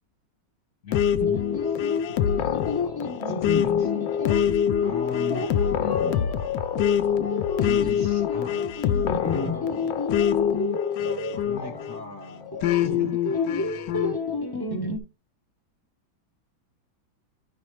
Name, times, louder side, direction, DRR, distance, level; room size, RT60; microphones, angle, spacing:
sound 1, 0.9-12.0 12.6-14.2, left 9 dB, 75° left, 1.2 m, -25 dB
sound 2, 1.2-15.0, left 4 dB, 25° left, 0.5 m, -31 dB
voice 1, 1.6-2.3 3.2-3.9 4.8-6.4 7.6-8.6 9.2-9.9 10.6-10.7 11.3-13.5, left 6 dB, 40° left, 1.3 m, -39 dB
11.5 x 5.1 x 3.1 m
omnidirectional pair, 2.2 m